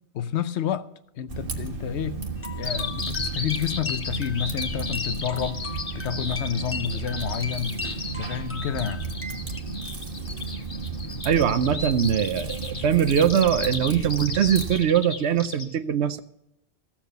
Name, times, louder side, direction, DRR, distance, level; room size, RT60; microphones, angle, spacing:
voice 1, 0.1-0.9 1.2-2.2 2.5-7.8 8.1-9.1, left 9 dB, 90° left, 1.0 m, -29 dB
Typing, 1.3-14.8, right 4 dB, 55° right, 1.5 m, -34 dB
sound 1, 2.4-9.6, left 5 dB, 15° left, 0.8 m, -39 dB
Bird vocalization bird call bird song, 2.6-15.6, left 3 dB, 75° left, 1.6 m, -35 dB
voice 2, 11.2-16.2, right 8 dB, 80° right, 1.0 m, -22 dB
15.0 x 7.3 x 6.7 m
omnidirectional pair, 1.1 m